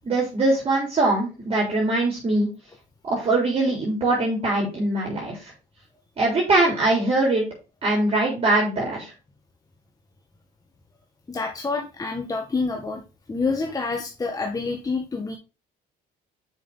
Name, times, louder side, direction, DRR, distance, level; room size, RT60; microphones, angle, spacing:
voice 1, 0.0-2.5 3.1-5.4 6.2-7.4 7.8-9.1, right 2 dB, 35° right, -3 dB, 3.9 m, -22 dB
voice 2, 11.3-13.0 13.3-15.4, left 4 dB, 20° left, 2 dB, 1.3 m, -27 dB
7.0 x 6.1 x 4.0 m, 0.30 s
cardioid pair, 110°, 17 cm